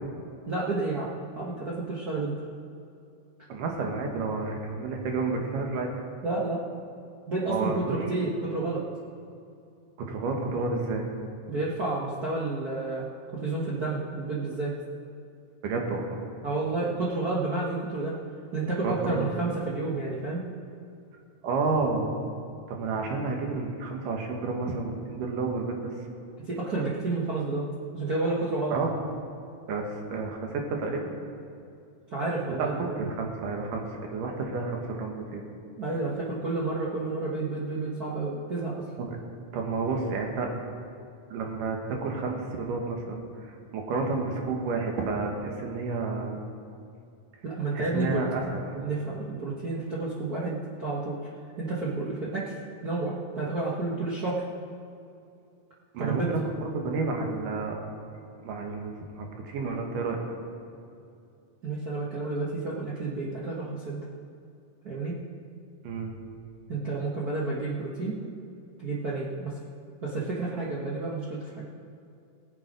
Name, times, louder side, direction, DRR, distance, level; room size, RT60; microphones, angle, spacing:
voice 1, 0.5-2.3 6.2-6.6 7.3-8.8 11.5-14.8 16.4-18.2 18.5-20.5 26.5-27.7 27.9-28.7 32.1-33.1 35.8-38.8 47.4-48.2 48.7-51.3 51.6-52.5 52.8-54.5 56.0-56.3 61.6-64.0 64.8-65.2 66.7-68.2 68.8-69.5 70.0-71.6, right 3 dB, 55° right, -6 dB, 1.0 m, -30 dB
voice 2, 3.5-5.9 7.5-8.0 10.0-11.1 15.6-16.2 18.8-19.3 21.4-22.1 22.7-25.9 28.7-28.9 29.7-31.1 32.5-35.4 39.0-39.2 39.5-40.5 41.3-46.4 47.7-48.6 55.9-57.8 58.4-60.4 65.8-66.1, right 4 dB, 80° right, 2 dB, 3.0 m, -30 dB
19.0 x 7.3 x 5.2 m, 2.6 s
omnidirectional pair, 3.7 m